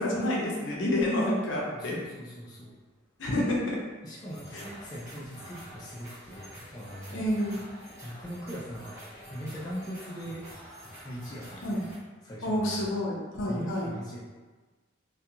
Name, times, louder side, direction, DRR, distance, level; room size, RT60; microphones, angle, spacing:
voice 1, 0.0-2.0 3.2-3.8 4.5-4.6 7.1-7.6 11.6-11.8 12.4-13.9, left 1 dB, 65° left, -3 dB, 0.6 m, -28 dB
voice 2, 1.7-2.8 4.0-7.2 8.0-9.0 9.3-10.4 11.0-11.8 12.2-13.0 13.5-14.2, equal, 20° left, -7 dB, 0.3 m, -40 dB
sound 1, 4.3-12.0, equal, 15° right, 0.7 m, -47 dB
2.4 x 2.2 x 2.7 m, 1.3 s
head